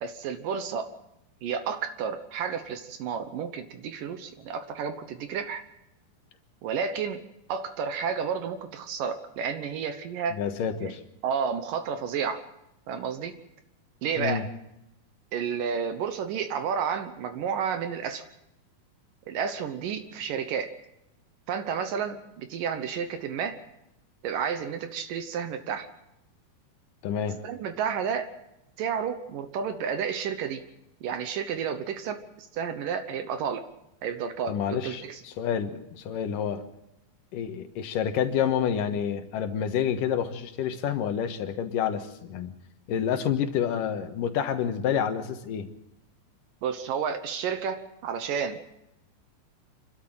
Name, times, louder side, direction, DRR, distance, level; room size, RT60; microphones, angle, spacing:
voice 1, 0.0-0.9 1.4-5.6 6.6-7.2 7.5-10.4 10.8-10.9 11.2-12.4 12.9-13.3 14.0-14.5 15.3-18.2 19.3-20.7 21.5-23.6 24.2-25.9 27.4-28.3 28.8-30.6 31.0-33.6 34.0-35.2 46.6-48.6, right 7 dB, 70° right, 9 dB, 2.6 m, -31 dB
voice 2, 10.3-11.0 14.2-14.4 27.0-27.4 34.5-36.6 37.3-42.5 42.9-45.7, left 8 dB, 70° left, 7 dB, 2.8 m, -28 dB
27.0 x 13.0 x 7.5 m, 0.84 s
omnidirectional pair, 4.3 m